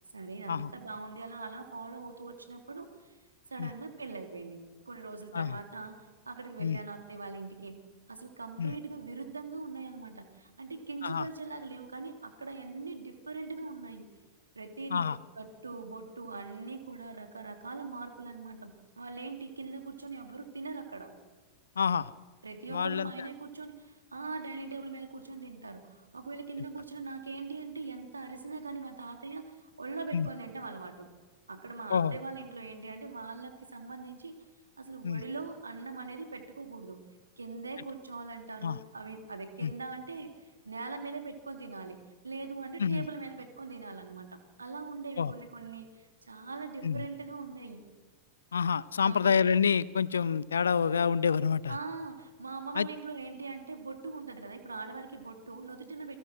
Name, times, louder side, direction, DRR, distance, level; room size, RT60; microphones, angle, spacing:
voice 1, 0.1-3.1 3.5-7.8 8.1-14.1 14.5-15.1 15.3-21.1 22.4-31.1 31.5-34.4 34.8-37.0 37.4-47.9 49.0-49.3 51.7-56.2, right 4 dB, 75° right, 6 dB, 3.3 m, -42 dB
voice 2, 21.8-22.1 22.7-23.3 30.1-30.3 31.9-32.2 35.0-35.2 38.6-38.8 39.6-39.7 42.8-43.1 45.2-45.3 46.8-47.0 48.5-51.8 52.7-52.9, left 6 dB, 70° left, 21 dB, 0.7 m, -28 dB
29.0 x 23.0 x 6.2 m, 1.4 s
figure-of-eight pair, 90°, 0 cm